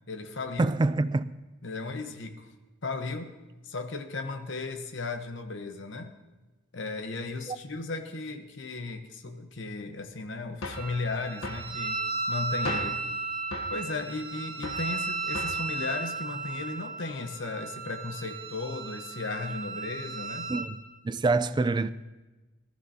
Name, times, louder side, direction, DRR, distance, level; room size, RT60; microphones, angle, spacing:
voice 1, 0.1-0.7 1.6-2.5 2.8-3.3 3.6-6.1 6.7-12.0 12.3-13.0 13.7-20.5, left 3 dB, 65° left, 1.0 m, -35 dB
voice 2, 0.6-1.3 7.5-7.6 20.5-20.8 21.0-21.9, right 3 dB, 20° right, 0.3 m, -26 dB
sound 1, 10.6-10.9 11.4-11.7 12.7-13.0 13.5-13.8 14.6-14.9 15.3-15.7, left 2 dB, 85° left, 1.1 m, -36 dB
Wind instrument woodwind instrument, 10.7-20.7, right 3 dB, 40° right, 3.1 m, -35 dB
18.5 x 12.5 x 2.8 m
head